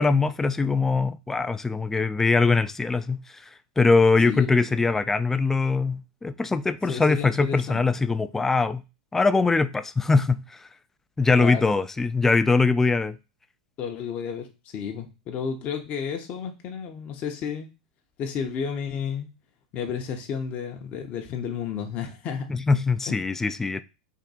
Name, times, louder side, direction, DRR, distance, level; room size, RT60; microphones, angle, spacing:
voice 1, 0.0-3.4 3.8-8.8 9.1-10.7 11.2-13.2 22.5-23.8, left 4 dB, 10° left, 0.3 m, -22 dB
voice 2, 4.2-4.6 6.9-7.8 11.3-11.7 13.8-17.7 18.2-19.3 19.7-22.4 23.1-23.2, left 7 dB, 40° left, 0.7 m, -32 dB
3.5 x 2.6 x 4.1 m
hypercardioid pair, 100°, 4 cm